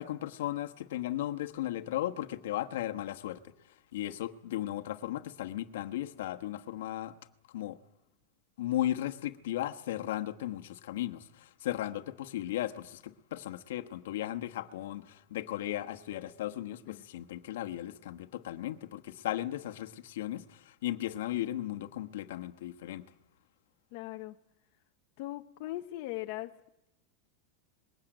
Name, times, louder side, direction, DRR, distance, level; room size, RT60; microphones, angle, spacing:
voice 1, 0.0-3.4 3.9-7.1 7.5-7.8 8.6-23.0, left 13 dB, 75° left, 1.2 m, -36 dB
voice 2, 23.9-24.4 25.2-26.5, left 17 dB, 50° left, 0.8 m, -39 dB
21.0 x 16.5 x 9.1 m
supercardioid pair, 165°, 0 cm